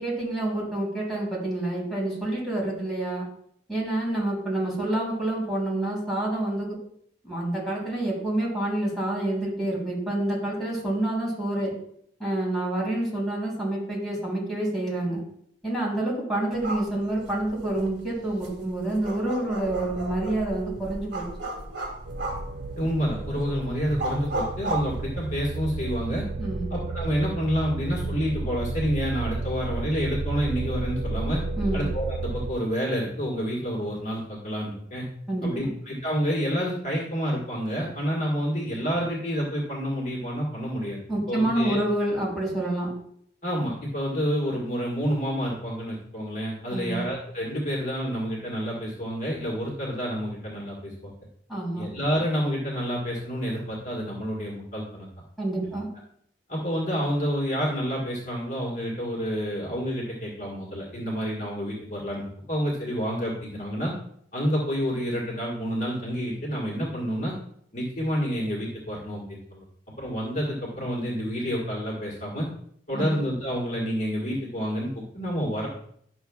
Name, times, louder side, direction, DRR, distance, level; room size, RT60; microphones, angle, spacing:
voice 1, 0.0-3.3 3.7-6.8 7.2-11.7 12.2-15.2 15.6-21.3 26.4-26.7 31.6-31.9 35.3-35.7 41.1-42.9 46.7-47.0 51.5-51.9 55.4-55.9 72.9-73.2, right 1 dB, ahead, -6 dB, 3.3 m, -28 dB
sound 1, 16.5-25.7, right 2 dB, 80° right, 2.1 m, -35 dB
sound 2, 22.1-32.5, right 3 dB, 50° right, 0.4 m, -32 dB
voice 2, 22.7-26.2 26.7-31.4 31.7-35.1 35.4-41.0 41.3-41.8 43.4-51.1 51.7-55.1 55.6-55.7 56.5-63.9 64.3-67.3 67.7-69.6 70.0-72.5 72.9-74.9 75.1-75.7, equal, 45° left, -3 dB, 1.6 m, -29 dB
11.0 x 6.4 x 2.3 m, 0.67 s
head